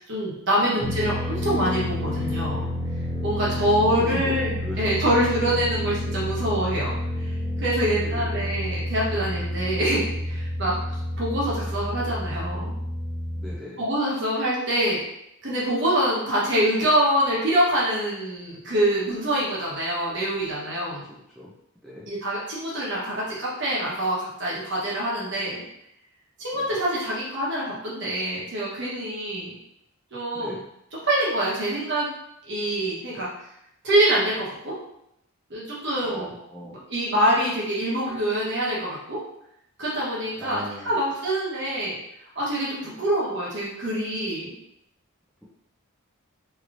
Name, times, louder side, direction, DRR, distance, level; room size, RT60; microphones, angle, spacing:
voice 1, 0.0-2.7 3.2-4.5 4.8-7.3 7.6-10.8 11.2-12.7 13.8-15.0 15.4-21.0 22.1-25.6 26.4-29.5 30.1-30.6 31.0-32.1 32.5-33.3 33.8-34.7 35.5-36.3 36.7-39.2 39.8-42.0 42.4-44.5, right 1 dB, 50° right, -6 dB, 1.1 m, -25 dB
voice 2, 0.6-1.1 3.4-3.7 4.0-4.3 4.6-5.1 5.4-5.5 8.0-8.6 13.4-13.9 21.1-21.5 21.8-22.1 26.5-26.8 30.3-30.6 36.0-36.8 40.4-41.0 42.8-43.1, equal, ahead, -7 dB, 0.4 m, -39 dB
sound 1, 0.8-13.5, left 1 dB, 30° left, 0.9 m, -29 dB
3.3 x 3.0 x 2.5 m, 0.78 s
head